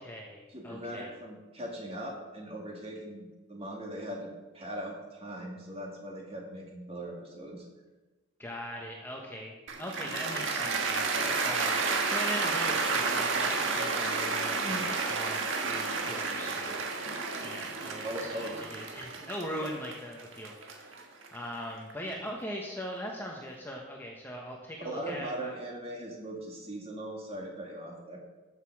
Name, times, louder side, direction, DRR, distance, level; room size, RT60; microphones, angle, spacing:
voice 1, 0.0-1.1 8.4-11.8 12.1-14.6 15.1-16.8 17.4-25.6, equal, 10° left, -1 dB, 1.1 m, -40 dB
voice 2, 0.5-4.3 4.5-7.7 14.6-15.0 18.0-18.5 18.9-19.0 24.9-28.2, right 1 dB, 30° right, -1 dB, 2.3 m, -39 dB
Cheering / Applause, 9.7-21.9, right 4 dB, 75° right, 1.4 m, -31 dB
13.5 x 6.8 x 4.8 m, 1.2 s
head